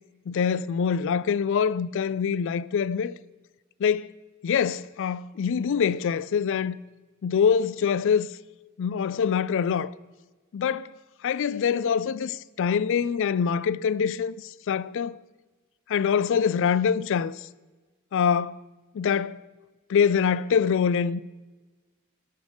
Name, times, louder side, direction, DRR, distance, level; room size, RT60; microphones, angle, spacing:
voice 1, 0.3-3.2 3.8-4.2 4.4-6.8 7.2-8.3 8.8-9.9 10.5-10.9 11.2-15.2 15.9-17.5 18.1-18.6 18.9-19.4 19.9-21.4, left 7 dB, 60° left, 0.3 m, -24 dB
13.0 x 6.6 x 5.2 m
head